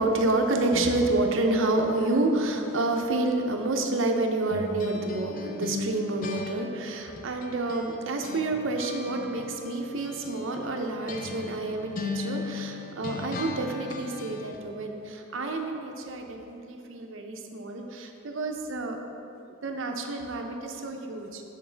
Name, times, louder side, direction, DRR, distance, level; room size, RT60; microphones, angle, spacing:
voice 1, 0.0-19.0 19.6-21.4, right 2 dB, 65° right, 3 dB, 0.6 m, -29 dB
sound 1, 4.5-8.0 8.2-14.6, left 4 dB, 40° left, 0.4 m, -38 dB
6.6 x 6.5 x 3.3 m, 2.8 s
head